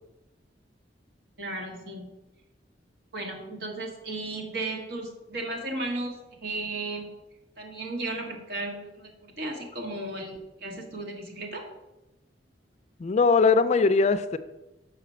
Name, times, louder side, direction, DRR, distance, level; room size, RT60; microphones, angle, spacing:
voice 1, 1.4-2.1 3.1-6.1 6.4-7.1 7.6-11.6, right 2 dB, 70° right, 1.8 m, -35 dB
voice 2, 13.0-14.4, left 4 dB, 40° left, 0.4 m, -21 dB
5.9 x 5.0 x 6.7 m
head